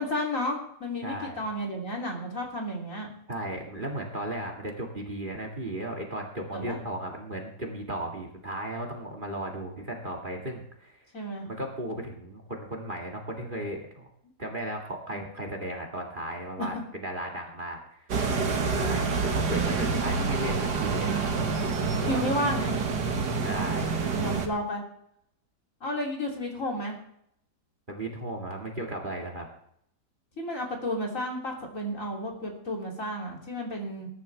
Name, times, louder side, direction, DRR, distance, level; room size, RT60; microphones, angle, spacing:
voice 1, 0.0-3.1 6.5-6.8 11.1-11.5 15.1-15.2 16.6-16.7 18.7-19.0 22.0-22.8 24.1-24.8 25.8-27.0 30.4-34.1, left 1 dB, 50° left, 0 dB, 3.5 m, -32 dB
voice 2, 1.0-1.4 3.3-11.0 11.5-14.1 14.4-18.1 18.9-21.1 22.0-22.3 23.4-24.2 27.9-29.5, right 1 dB, 30° right, 3 dB, 2.3 m, -35 dB
sound 1, 18.1-24.5, right 4 dB, 75° right, 2.1 m, -27 dB
20.5 x 11.5 x 3.4 m, 0.72 s
omnidirectional pair, 1.8 m